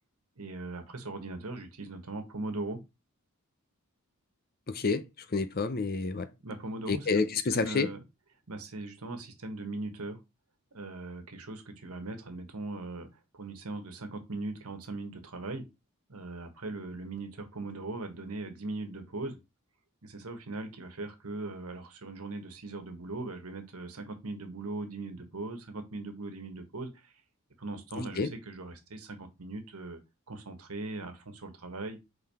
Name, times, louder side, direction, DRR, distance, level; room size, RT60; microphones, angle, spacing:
voice 1, 0.4-2.8 6.4-8.0 8.5-10.2 10.7-13.1 13.3-15.6 16.1-19.4 20.0-27.1 27.6-30.0 30.3-32.0, right 2 dB, 85° right, 1.4 m, -39 dB
voice 2, 4.7-5.0 5.3-6.3 6.9-7.9 28.2-28.3, left 4 dB, 45° left, 0.7 m, -28 dB
5.5 x 4.0 x 4.3 m
head